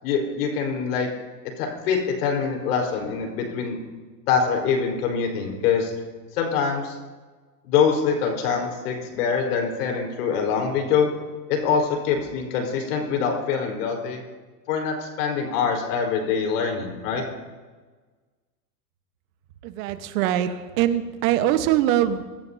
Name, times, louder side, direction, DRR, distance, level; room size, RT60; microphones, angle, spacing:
voice 1, 0.0-1.1 1.6-3.8 4.3-5.9 6.3-7.0 7.6-11.1 11.5-14.2 14.7-17.2, left 6 dB, 65° left, 2 dB, 4.8 m, -24 dB
voice 2, 19.6-22.3, right 12 dB, 55° right, 9 dB, 1.4 m, -23 dB
25.0 x 14.5 x 2.8 m, 1.3 s
supercardioid pair, 125°, 49 cm